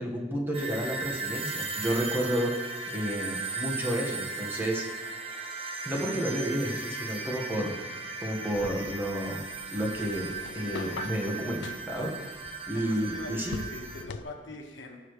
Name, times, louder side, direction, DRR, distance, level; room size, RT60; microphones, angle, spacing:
voice 1, 0.0-2.5 2.9-4.9 5.8-9.4 9.7-12.4 12.7-13.6, equal, 10° right, -1 dB, 1.4 m, -31 dB
sound 1, 0.5-14.0, right 3 dB, 30° right, 0.9 m, -37 dB
sound 2, 8.5-14.2, left 4 dB, 70° left, 0.4 m, -43 dB
voice 2, 12.7-15.0, left 2 dB, 85° left, 2 dB, 1.4 m, -43 dB
15.0 x 6.5 x 3.2 m, 1.3 s
head